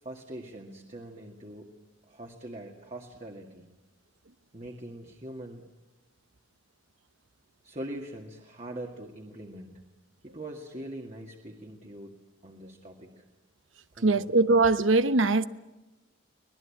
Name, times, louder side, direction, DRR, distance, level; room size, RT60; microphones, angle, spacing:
voice 1, 0.0-1.7 2.1-3.7 4.5-5.7 7.6-9.8 10.2-12.1 12.4-13.2 14.0-14.3, right 1 dB, 35° right, 2.1 m, -42 dB
voice 2, 14.0-15.5, right 3 dB, 80° right, 1.0 m, -21 dB
25.0 x 19.5 x 8.7 m
head